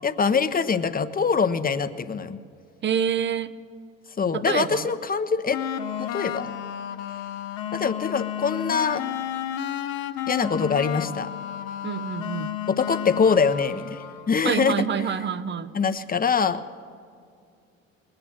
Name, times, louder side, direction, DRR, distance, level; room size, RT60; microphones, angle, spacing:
voice 1, 0.0-2.4 4.2-5.6 6.0-6.5 7.7-9.0 10.3-11.3 12.7-14.0 14.3-14.7 15.7-16.6, left 5 dB, 30° left, 10 dB, 0.8 m, -23 dB
voice 2, 2.8-3.6 4.3-4.9 11.8-12.5 14.4-15.7, right 8 dB, 35° right, 16 dB, 0.7 m, -27 dB
sound 1, 5.5-14.3, left 10 dB, 75° left, 0.8 m, -32 dB
20.5 x 8.9 x 7.1 m, 2.3 s
hypercardioid pair, 60°, 32 cm